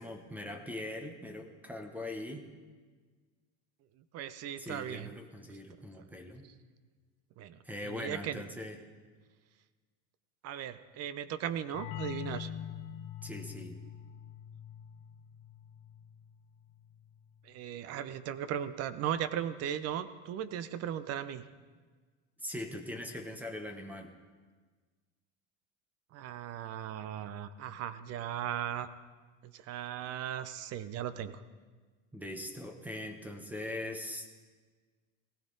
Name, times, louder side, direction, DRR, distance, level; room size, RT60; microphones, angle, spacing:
voice 1, 0.0-2.4 4.6-6.5 7.6-8.8 13.2-13.8 22.4-24.1 32.1-34.3, left 1 dB, 5° right, 6 dB, 1.1 m, -41 dB
voice 2, 4.0-5.1 7.4-8.4 10.4-12.5 17.4-21.4 26.1-28.9 29.4-31.4, right 10 dB, 40° right, 14 dB, 0.7 m, -37 dB
sound 1, 11.7-17.2, left 10 dB, 50° left, 1.5 m, -44 dB
17.0 x 15.5 x 4.0 m, 1.4 s
supercardioid pair, 140°, 37 cm